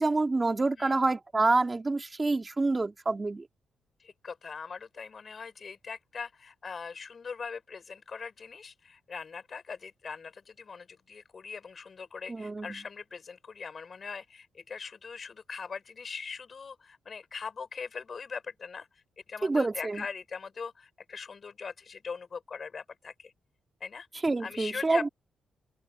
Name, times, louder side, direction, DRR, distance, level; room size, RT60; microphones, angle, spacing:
voice 1, 0.0-3.5 12.3-12.8 19.4-20.0 24.2-25.1, right 3 dB, 20° right, 2.9 m, -27 dB
voice 2, 4.0-18.9 19.3-23.3 23.8-24.1 24.4-25.1, left 5 dB, 35° left, 6.3 m, -41 dB
open air
cardioid pair, 140°, 0 cm